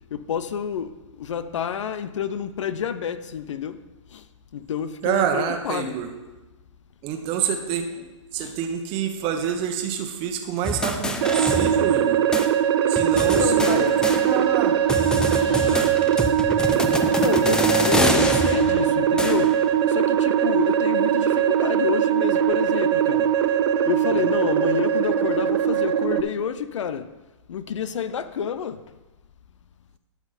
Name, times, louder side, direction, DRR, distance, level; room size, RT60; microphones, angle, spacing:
voice 1, 0.1-3.8 4.1-4.3 4.5-6.0 8.4-8.6 12.8-14.0 17.1-19.6 19.9-23.3 23.8-27.1 27.5-28.8, left 7 dB, 70° left, 0.5 m, -29 dB
voice 2, 5.0-6.1 7.0-8.0 8.3-12.2 12.9-13.9 14.2-14.8 15.6-16.0 24.1-24.2, right 8 dB, 35° right, 1.1 m, -27 dB
sound 1, 10.6-12.1 12.3-12.5 12.9-14.6 14.9-19.7, left 1 dB, 5° left, 0.6 m, -26 dB
sound 2, 11.2-26.2, right 9 dB, 55° right, 0.6 m, -21 dB
sound 3, 14.1-20.1, left 1 dB, 35° left, 2.9 m, -46 dB
12.0 x 5.9 x 4.3 m
hypercardioid pair, 115°, 16 cm